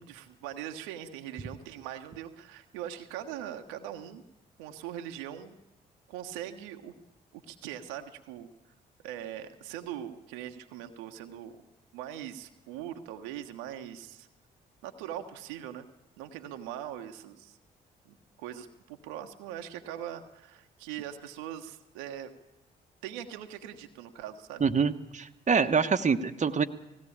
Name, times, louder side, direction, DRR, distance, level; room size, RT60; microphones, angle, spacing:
voice 1, 0.0-4.2 4.6-5.5 6.1-6.9 7.3-8.5 9.0-11.6 11.9-14.3 14.8-15.9 16.2-17.6 18.0-22.3 23.0-24.6, right 11 dB, 80° right, 6 dB, 1.3 m, -41 dB
voice 2, 24.6-26.6, right 5 dB, 35° right, 7 dB, 1.3 m, -25 dB
18.5 x 16.5 x 8.8 m, 0.94 s
hypercardioid pair, 45°, 21 cm